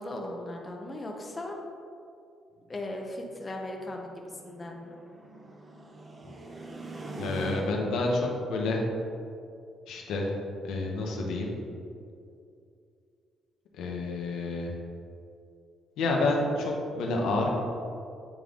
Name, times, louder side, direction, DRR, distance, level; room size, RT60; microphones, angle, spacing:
voice 1, 0.0-1.6 2.7-4.1 4.4-5.0 6.2-6.4, left 1 dB, 25° left, 1 dB, 0.8 m, -38 dB
sound 1, 2.6-8.1, right 2 dB, 35° right, 0.8 m, -42 dB
voice 2, 7.2-8.8 9.9-10.3 10.6-11.6 13.7-14.7 16.0-17.5, left 2 dB, 85° left, 0 dB, 0.9 m, -29 dB
8.7 x 3.4 x 3.8 m, 2.5 s
cardioid pair, 90°, 0 cm